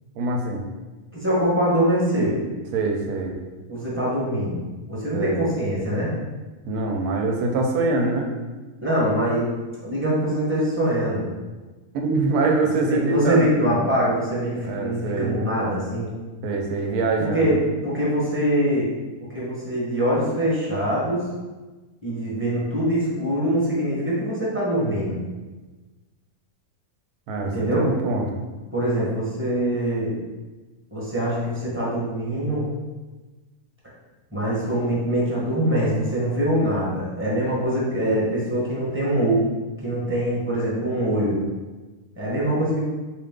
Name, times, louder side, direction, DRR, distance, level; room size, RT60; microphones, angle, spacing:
voice 1, 0.2-0.6 2.7-3.4 5.1-5.4 6.7-8.3 11.9-13.5 14.6-15.3 16.4-17.5 27.3-28.3, right 3 dB, 85° right, 2 dB, 1.1 m, -24 dB
voice 2, 1.1-2.4 3.7-4.6 4.9-6.1 8.8-9.5 9.8-11.3 12.8-16.1 17.2-18.9 19.3-21.2 22.0-25.2 27.4-27.9 28.7-30.2 30.9-32.7 34.3-39.4 39.8-41.4 42.2-42.8, right 1 dB, 10° right, -7 dB, 0.9 m, -23 dB
4.4 x 2.4 x 3.6 m, 1.2 s
omnidirectional pair, 1.6 m